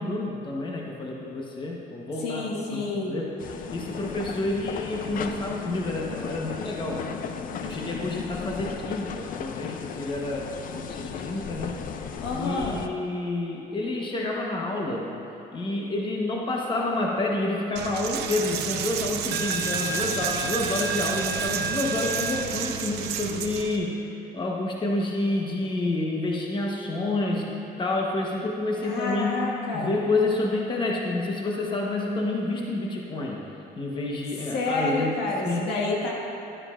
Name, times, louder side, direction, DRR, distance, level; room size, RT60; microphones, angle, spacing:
voice 1, 0.0-2.4 2.7-3.3 3.7-7.1 7.6-11.8 12.3-15.1 15.5-24.1 24.3-27.5 27.8-33.4 33.8-35.2 35.4-35.7, left 2 dB, 30° left, -1 dB, 1.1 m, -29 dB
voice 2, 2.2-3.2 12.2-12.8 28.8-30.0 34.5-36.1, left 3 dB, 85° left, -3 dB, 1.8 m, -29 dB
sound 1, 3.4-12.9, left 7 dB, 55° left, 0.5 m, -36 dB
Coin (dropping), 17.8-23.8, right 6 dB, 80° right, 0.6 m, -29 dB
12.5 x 9.6 x 2.5 m, 2.9 s
cardioid pair, 110°, 17 cm